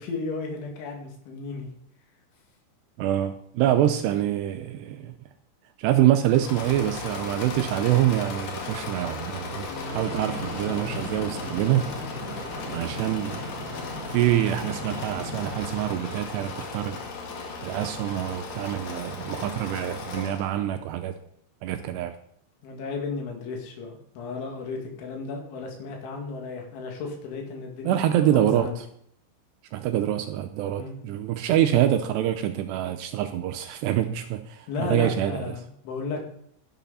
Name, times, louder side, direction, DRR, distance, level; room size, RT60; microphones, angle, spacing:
voice 1, 0.0-1.7 9.7-10.0 22.6-28.8 30.8-31.0 34.7-36.3, left 4 dB, 85° left, 1 dB, 4.7 m, -34 dB
voice 2, 3.0-5.1 5.8-11.9 12.7-13.5 14.1-17.0 17.6-21.2 21.6-22.2 27.8-28.7 29.7-35.4, right 12 dB, 80° right, 9 dB, 2.6 m, -25 dB
Engine / Mechanisms, 6.3-20.5, left 4 dB, 55° left, 3.1 m, -37 dB
Train, 9.9-15.9, equal, 35° right, 3.0 m, -37 dB
12.5 x 11.5 x 4.1 m, 0.67 s
omnidirectional pair, 5.3 m